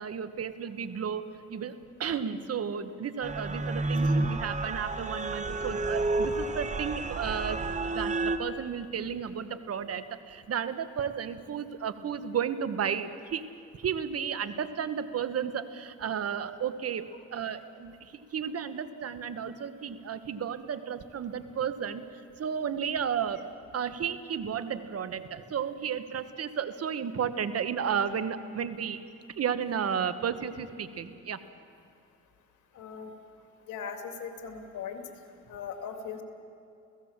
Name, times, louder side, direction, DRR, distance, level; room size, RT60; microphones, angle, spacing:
voice 1, 0.0-13.5 13.7-22.0 22.3-29.0 29.4-31.4, right 7 dB, 50° right, 11 dB, 1.4 m, -33 dB
sound 1, 3.2-8.4, right 2 dB, 25° right, 1.4 m, -30 dB
voice 2, 32.7-33.1 33.7-35.0 35.5-36.2, left 6 dB, 80° left, 5 dB, 2.7 m, -39 dB
29.5 x 16.5 x 7.4 m, 2.5 s
cardioid pair, 90°, 30 cm